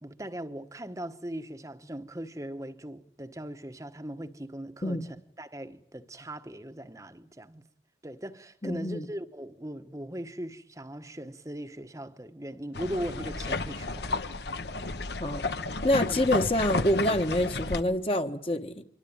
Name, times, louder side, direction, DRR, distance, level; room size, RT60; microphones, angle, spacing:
voice 1, 0.0-7.6 8.0-14.4 14.8-14.9 16.0-16.2, right 1 dB, 20° right, 1.2 m, -39 dB
voice 2, 8.6-9.1 15.2-15.4 15.8-18.8, left 1 dB, 30° left, 1.5 m, -27 dB
sound 1, 12.7-17.8, left 3 dB, 70° left, 1.2 m, -32 dB
26.0 x 23.5 x 8.9 m
head